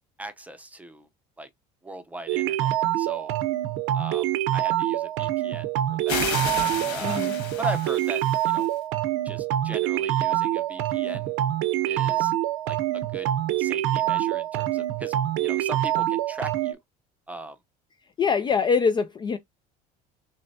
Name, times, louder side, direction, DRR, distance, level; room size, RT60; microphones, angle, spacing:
voice 1, 0.2-1.1 1.4-1.5 1.8-2.7 3.0-3.3 3.9-6.3 6.6-7.2 7.6-8.7 9.2-11.3 11.8-12.3 12.6-13.3 13.6-16.8 17.3-17.6, right 1 dB, 10° right, 0.6 m, -39 dB
sound 1, 2.3-16.7, right 13 dB, 80° right, 0.7 m, -25 dB
sound 2, 6.1-8.7, left 7 dB, 70° left, 1.6 m, -32 dB
voice 2, 7.0-7.3 18.2-19.4, left 5 dB, 25° left, 0.3 m, -23 dB
6.3 x 2.2 x 2.7 m
cardioid pair, 115°, 19 cm